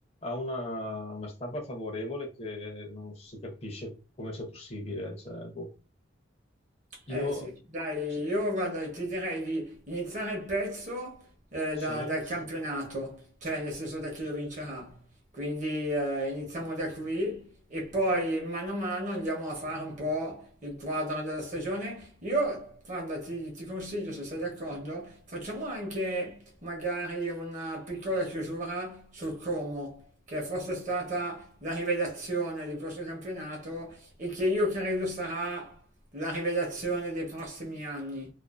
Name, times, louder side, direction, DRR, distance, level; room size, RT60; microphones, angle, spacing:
voice 1, 0.2-5.7 7.1-7.5 11.9-12.2, left 1 dB, 30° left, 0.6 m, -37 dB
voice 2, 6.9-15.0 15.3-35.8 36.1-38.3, right 1 dB, 40° right, 0.8 m, -33 dB
2.4 x 2.4 x 2.3 m
head